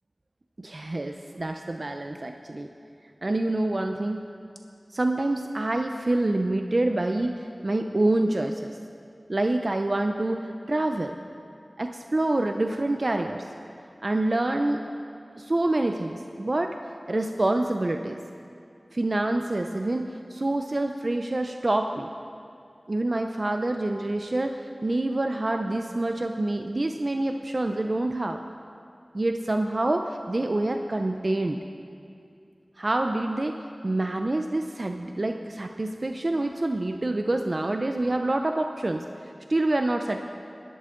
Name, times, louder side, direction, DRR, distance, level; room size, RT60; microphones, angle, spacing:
voice 1, 0.6-2.7 3.2-4.2 4.9-8.8 9.3-11.2 11.8-13.5 14.0-14.8 15.4-16.8 17.1-18.2 18.9-22.1 22.9-28.4 29.1-31.6 32.8-40.2, right 2 dB, 50° right, 5 dB, 0.5 m, -27 dB
17.5 x 12.0 x 3.8 m, 2.5 s
wide cardioid pair, 50°, 0 cm